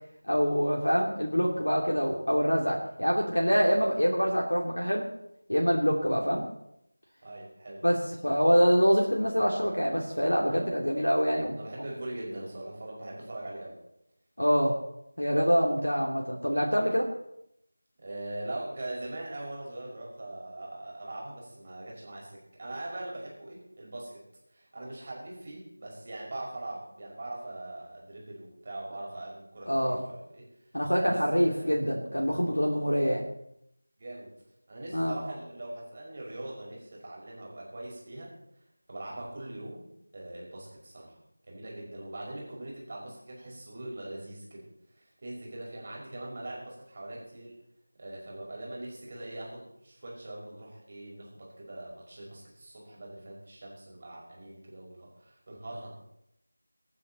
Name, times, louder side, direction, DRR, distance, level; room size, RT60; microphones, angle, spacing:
voice 1, 0.3-5.1 5.5-6.4 7.8-11.6 14.4-14.8 15.2-17.1 29.7-30.0 30.7-33.2 34.9-35.2, equal, 70° left, -1 dB, 2.6 m, -25 dB
voice 2, 7.2-7.9 10.4-10.7 11.5-13.8 15.4-15.5 18.0-24.2 24.5-30.5 30.9-31.7 32.7-32.8 34.0-34.3 34.7-38.3 38.9-41.2 41.5-44.6 45.0-47.5 48.0-55.9, right 1 dB, 30° right, -3 dB, 5.5 m, -41 dB
25.0 x 9.1 x 4.3 m, 0.79 s
figure-of-eight pair, 170°, 0 cm